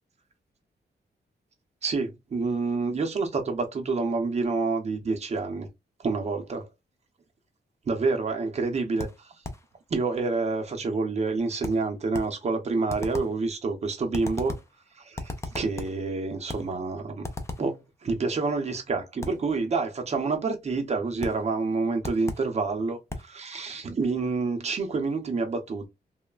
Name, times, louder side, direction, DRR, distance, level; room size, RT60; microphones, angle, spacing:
voice 1, 1.8-5.7 6.0-6.7 7.9-9.1 9.9-14.6 15.0-17.2 17.6-25.9, right 3 dB, 40° right, 0.6 m, -28 dB
sound 1, 9.0-9.7 11.6-12.4 12.9-13.4 14.1-14.8 15.2-16.0 16.5-16.8 17.2-17.8 19.2-19.5 21.2-21.5 22.0-22.6 23.1-23.4, left 2 dB, 15° left, 0.4 m, -37 dB
3.0 x 2.1 x 2.3 m
wide cardioid pair, 160°, 18 cm